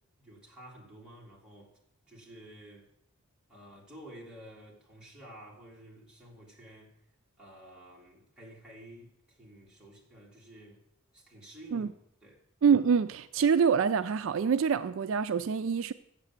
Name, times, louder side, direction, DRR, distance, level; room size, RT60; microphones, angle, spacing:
voice 1, 0.2-1.8 2.1-2.9 3.5-7.0 7.4-10.8 11.1-11.9 12.2-12.4, right 1 dB, 5° right, 2.1 m, -51 dB
voice 2, 12.6-15.9, right 6 dB, 60° right, 0.3 m, -25 dB
7.9 x 7.4 x 7.1 m
head